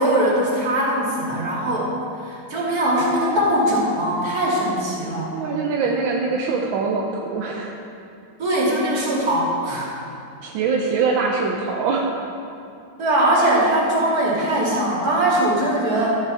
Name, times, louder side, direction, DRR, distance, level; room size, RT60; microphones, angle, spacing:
voice 1, 0.0-1.9 2.2-5.3 8.4-9.9 13.0-16.2, right 1 dB, 50° right, -6 dB, 3.0 m, -21 dB
voice 2, 5.3-7.8 10.4-12.3, right 4 dB, 85° right, 0 dB, 1.5 m, -23 dB
13.0 x 9.2 x 4.2 m, 2.6 s
omnidirectional pair, 2.1 m